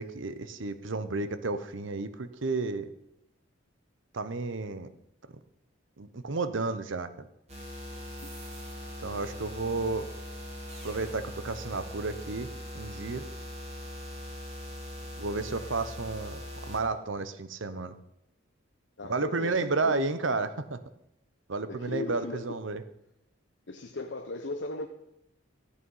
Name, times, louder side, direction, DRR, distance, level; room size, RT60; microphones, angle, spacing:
voice 1, 0.0-2.9 4.1-4.9 6.0-7.3 9.0-10.1 10.8-12.5 12.7-13.2 15.2-17.9 19.1-20.8 21.5-22.8, right 3 dB, 75° right, 12 dB, 0.9 m, -32 dB
sound 1, 7.5-16.8, equal, 30° right, 3.0 m, -41 dB
voice 2, 19.0-20.0 21.7-22.6 23.7-24.9, left 2 dB, 60° left, 3 dB, 0.9 m, -37 dB
14.0 x 8.5 x 5.6 m, 0.82 s
head